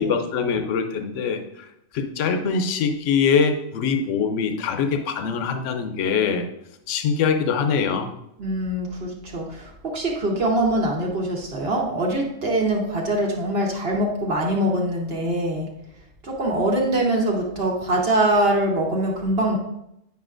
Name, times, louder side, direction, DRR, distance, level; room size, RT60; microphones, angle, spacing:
voice 1, 0.0-1.7 1.9-6.5 6.9-8.1, left 6 dB, 70° left, 6 dB, 1.0 m, -23 dB
voice 2, 8.4-15.7 16.2-19.6, right 1 dB, 50° right, -1 dB, 1.2 m, -23 dB
9.4 x 5.5 x 2.5 m, 0.81 s
omnidirectional pair, 1.4 m